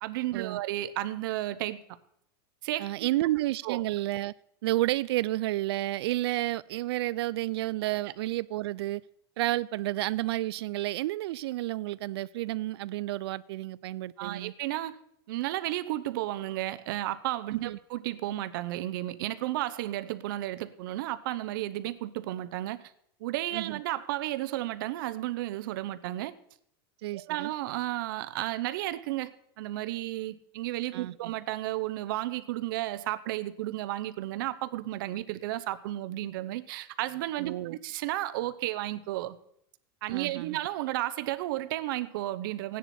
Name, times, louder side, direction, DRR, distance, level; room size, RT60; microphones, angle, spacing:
voice 1, 0.0-1.8 2.6-3.1 3.6-3.8 14.2-15.0 15.3-22.8 23.2-26.3 27.1-29.3 29.6-39.4 40.0-42.8, right 15 dB, 55° right, 0.7 m, -33 dB
voice 2, 2.8-4.3 4.6-9.0 9.4-14.5 17.5-17.8 23.5-23.8 27.0-27.5 30.9-31.1 37.4-37.8 40.1-40.6, right 16 dB, 80° right, 0.4 m, -31 dB
16.0 x 10.0 x 4.3 m
supercardioid pair, 175°, 13 cm